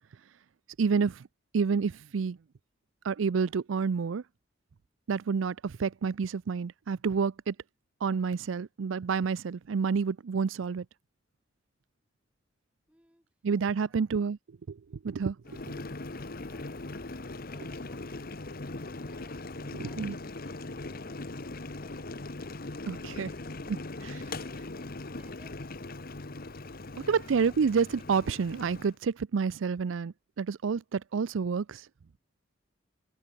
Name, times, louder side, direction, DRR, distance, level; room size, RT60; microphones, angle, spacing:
voice 1, 0.8-1.3 1.5-2.4 3.0-4.2 5.1-7.5 8.0-10.9 13.4-14.4 14.7-15.4 19.7-20.1 22.9-23.3 27.0-31.9, right 5 dB, 90° right, 0.5 m, -29 dB
voice 2, 12.9-13.3 13.8-14.1 15.5-15.7 16.1-19.4 19.8-22.3 23.1-25.6 26.1-26.8 27.1-27.5, right 1 dB, 5° right, 5.7 m, -63 dB
Boiling, 15.4-28.9, left 2 dB, 50° left, 1.4 m, -40 dB
open air
head